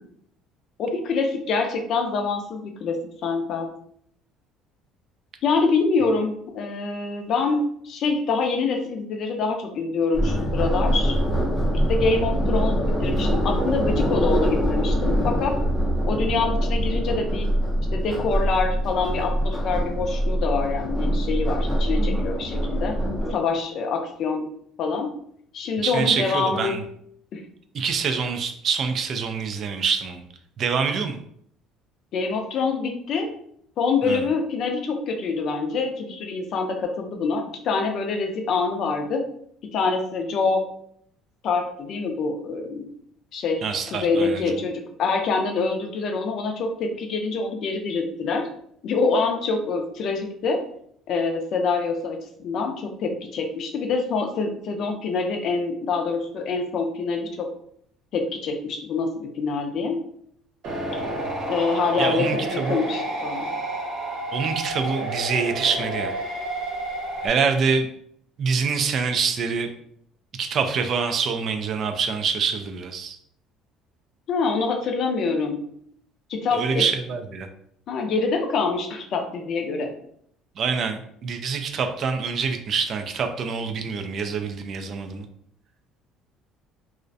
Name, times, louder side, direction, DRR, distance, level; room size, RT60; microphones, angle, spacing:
voice 1, 0.8-3.7 5.4-11.2 11.9-15.6 16.1-17.5 17.9-23.0 23.3-24.5 24.8-25.2 25.5-26.8 27.3-27.4 32.1-33.3 33.8-39.2 39.7-40.7 41.4-42.9 43.3-48.5 48.8-50.6 51.1-57.5 58.1-60.1 61.5-63.5 74.3-75.6 76.3-76.8 77.9-79.9, left 4 dB, 55° left, 4 dB, 0.4 m, -25 dB
sound 1, 10.1-23.3, equal, ahead, 0.6 m, -24 dB
voice 2, 25.8-26.8 27.7-30.2 30.6-31.2 34.0-34.3 43.6-44.4 62.0-62.8 64.3-66.1 67.2-67.9 68.4-69.7 70.4-73.2 76.5-77.5 80.6-85.3, right 5 dB, 45° right, 6 dB, 0.3 m, -25 dB
sound 2, 60.6-67.3, right 1 dB, 65° right, 0.9 m, -30 dB
2.4 x 2.1 x 2.6 m, 0.67 s
cardioid pair, 120°, 0 cm